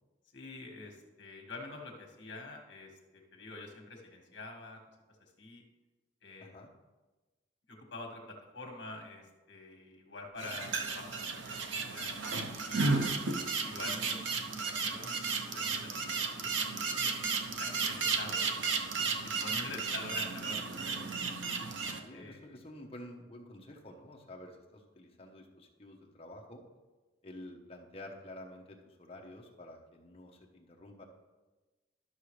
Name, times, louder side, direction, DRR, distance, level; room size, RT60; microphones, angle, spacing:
voice 1, 0.3-4.8 5.4-5.6 6.2-6.6 7.7-12.9 13.6-14.2 14.5-15.1 15.5-18.9 19.2-21.0 22.1-22.6, left 3 dB, 65° left, 1 dB, 1.6 m, -47 dB
sound 1, 10.4-22.0, right 4 dB, 75° right, 0.8 m, -34 dB
voice 2, 21.6-26.6 27.2-31.0, left 1 dB, 30° left, 0 dB, 1.0 m, -50 dB
12.0 x 6.1 x 3.3 m, 1.2 s
head